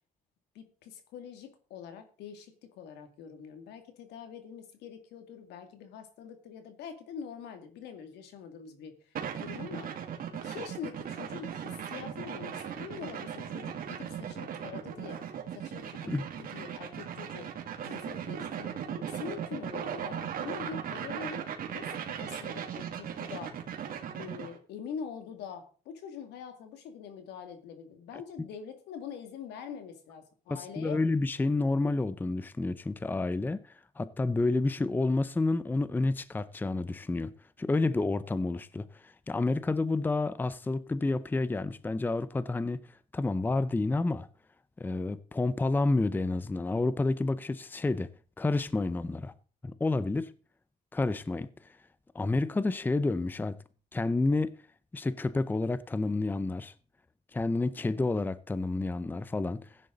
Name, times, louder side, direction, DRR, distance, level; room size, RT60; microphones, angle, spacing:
voice 1, 0.5-9.9 10.4-17.5 17.8-21.5 21.7-23.6 23.9-31.0, left 7 dB, 80° left, 2.4 m, -44 dB
sound 1, 9.1-24.6, right 8 dB, 60° right, 2.3 m, -38 dB
voice 2, 30.5-33.6 34.0-37.3 37.6-42.8 43.1-44.3 44.8-48.1 48.4-49.3 49.6-50.3 50.9-51.5 52.1-53.6 53.9-54.5 54.9-56.7 57.3-59.7, left 2 dB, 10° left, 0.6 m, -29 dB
15.5 x 10.0 x 3.9 m
cardioid pair, 110°, 17 cm